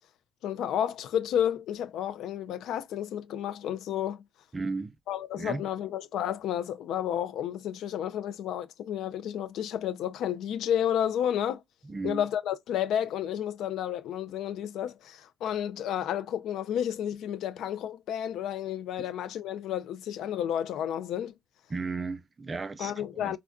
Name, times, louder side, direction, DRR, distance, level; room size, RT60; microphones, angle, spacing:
voice 1, 0.4-4.2 5.1-11.6 12.0-21.3 22.8-23.4, left 10 dB, 80° left, 0.4 m, -31 dB
voice 2, 4.5-5.0 5.4-5.6 11.8-12.3 21.7-23.4, right 3 dB, 35° right, 0.5 m, -35 dB
3.7 x 2.2 x 2.4 m
supercardioid pair, 70°, 0 cm